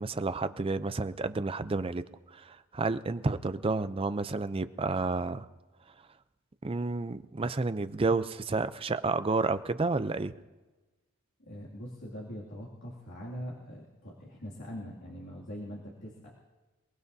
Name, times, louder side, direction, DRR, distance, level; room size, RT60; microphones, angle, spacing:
voice 1, 0.0-2.0 2.3-5.5 6.6-10.3, right 3 dB, 25° right, 12 dB, 0.4 m, -30 dB
voice 2, 11.4-16.3, equal, 55° left, -5 dB, 2.5 m, -42 dB
28.5 x 18.5 x 2.7 m, 1.2 s
head